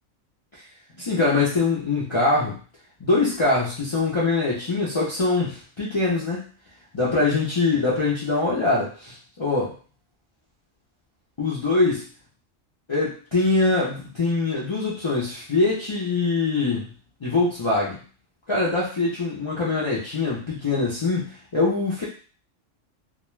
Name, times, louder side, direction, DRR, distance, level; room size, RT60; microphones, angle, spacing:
voice 1, 1.0-2.6 3.0-6.4 6.9-9.7 11.4-12.0 12.9-16.9 17.2-18.0 18.5-22.0, left 3 dB, 45° left, -7 dB, 0.3 m, -23 dB
2.3 x 2.2 x 3.0 m, 0.39 s
omnidirectional pair, 1.3 m